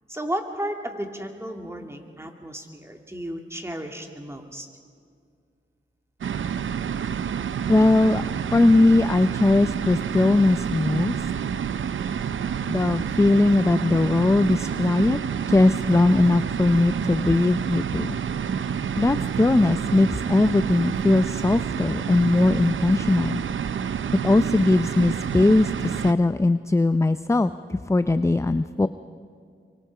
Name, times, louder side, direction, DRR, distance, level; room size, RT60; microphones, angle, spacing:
voice 1, 0.1-4.7, right 1 dB, 10° right, 3 dB, 2.7 m, -33 dB
sound 1, 6.2-26.1, right 7 dB, 70° right, 0.7 m, -28 dB
voice 2, 7.7-8.2 8.5-11.1 12.7-15.2 15.5-18.2 19.0-23.4 24.2-28.9, left 2 dB, 15° left, 12 dB, 0.5 m, -20 dB
24.0 x 24.0 x 4.9 m, 2.2 s
cardioid pair, 55°, 21 cm